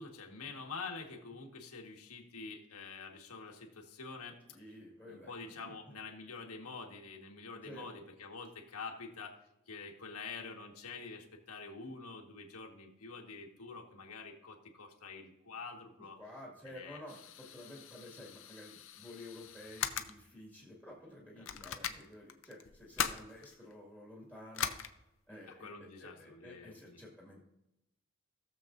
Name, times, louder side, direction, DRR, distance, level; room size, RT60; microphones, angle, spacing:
voice 1, 0.0-4.6 5.1-9.4 9.7-16.2 16.6-17.0 21.3-21.7 25.5-27.0, left 4 dB, 85° left, 1 dB, 1.5 m, -47 dB
voice 2, 4.5-5.3 5.6-5.7 7.6-7.9 16.2-24.7 25.3-27.4, left 1 dB, 10° right, -4 dB, 1.8 m, -51 dB
sound 1, 17.1-20.2 20.9-21.0 21.5-23.7 24.5-24.9, left 8 dB, 60° left, 0.6 m, -40 dB
17.5 x 7.0 x 2.6 m, 0.89 s
head